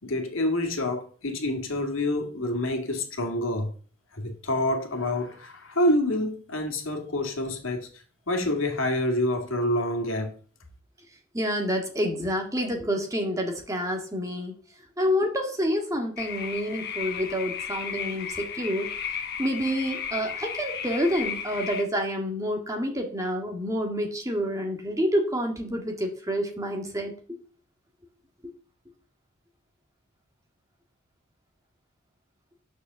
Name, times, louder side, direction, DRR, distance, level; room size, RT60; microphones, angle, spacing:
voice 1, 0.0-3.7 4.1-7.9 8.3-10.4, left 1 dB, 70° left, 2.2 m, -27 dB
voice 2, 11.3-14.5 15.0-18.9 19.4-27.1, equal, 15° right, 1.9 m, -28 dB
sound 1, 16.2-21.8, left 7 dB, 50° left, 1.3 m, -34 dB
10.5 x 6.4 x 6.9 m
head